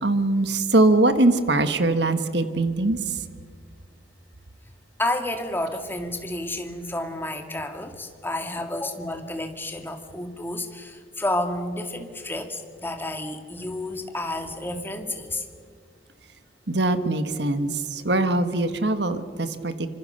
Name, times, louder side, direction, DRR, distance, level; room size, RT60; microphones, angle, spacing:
voice 1, 0.0-3.2 16.7-19.9, right 2 dB, 60° right, 11 dB, 1.5 m, -22 dB
voice 2, 5.0-15.5, left 1 dB, 10° left, 6 dB, 1.9 m, -30 dB
26.0 x 25.5 x 6.7 m, 2.1 s
head